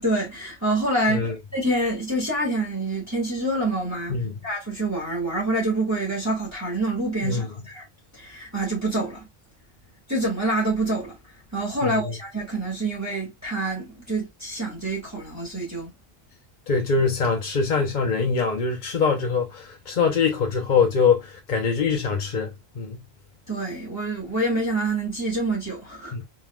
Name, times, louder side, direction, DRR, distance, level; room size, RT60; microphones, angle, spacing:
voice 1, 0.0-1.3 1.5-4.2 4.4-7.9 8.1-9.3 10.1-11.2 11.5-15.9 23.5-26.2, right 2 dB, 15° right, 1.9 m, -26 dB
voice 2, 16.7-23.1 26.1-26.2, left 5 dB, 50° left, 0.9 m, -23 dB
4.2 x 3.9 x 2.3 m
omnidirectional pair, 1.0 m